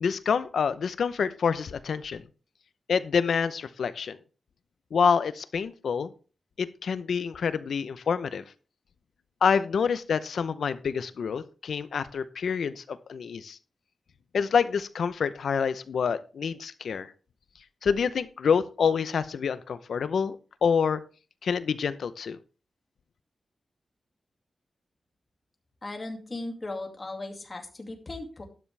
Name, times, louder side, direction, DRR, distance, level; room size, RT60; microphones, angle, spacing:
voice 1, 0.0-2.2 2.9-4.2 4.9-6.1 6.6-8.4 9.4-13.6 14.3-17.1 17.8-20.4 20.6-21.0 21.4-22.4, left 6 dB, 80° left, 13 dB, 0.8 m, -27 dB
voice 2, 25.8-28.4, left 2 dB, 25° left, 3 dB, 2.3 m, -37 dB
12.0 x 10.0 x 3.4 m, 0.36 s
wide cardioid pair, 130°, 0 cm